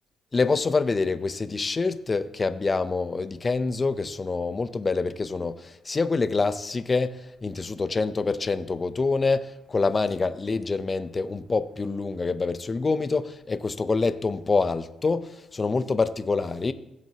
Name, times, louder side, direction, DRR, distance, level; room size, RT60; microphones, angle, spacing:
voice 1, 0.3-16.7, left 4 dB, 30° left, 0.6 m, -26 dB
16.5 x 7.5 x 2.9 m
cardioid pair, 90°, 0 cm